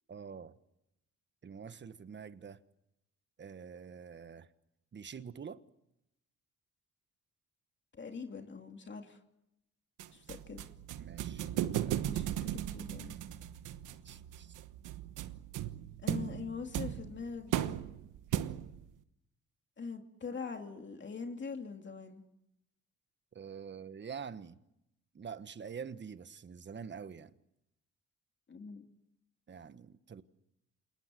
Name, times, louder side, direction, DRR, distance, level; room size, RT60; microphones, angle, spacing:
voice 1, 0.1-0.6 1.4-2.6 3.4-4.5 4.9-5.6 11.0-11.5 11.7-12.0 14.0-14.5 23.3-24.6 25.1-27.3 29.5-30.2, right 6 dB, 35° right, 1.4 m, -46 dB
voice 2, 7.9-9.2 10.1-10.6 12.1-13.2 16.0-17.8 19.8-22.2 28.5-28.9, left 5 dB, 40° left, 2.7 m, -43 dB
sound 1, 10.0-18.9, right 12 dB, 90° right, 1.2 m, -37 dB
28.0 x 19.5 x 7.8 m
cardioid pair, 90°, 30 cm